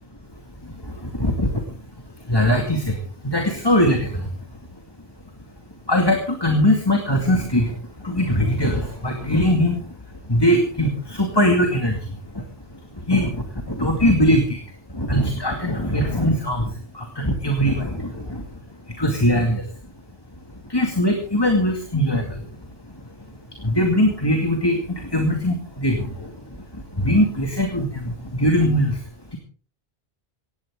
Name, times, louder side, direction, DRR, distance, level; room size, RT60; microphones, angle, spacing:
voice 1, 0.6-1.6 2.2-4.3 5.9-9.9 10.3-12.4 12.7-14.6 14.9-18.6 18.9-19.7 20.6-22.4 22.9-23.0 23.6-29.0, equal, 20° left, 3 dB, 2.3 m, -21 dB
18.5 x 16.0 x 3.7 m, 0.43 s
omnidirectional pair, 1.1 m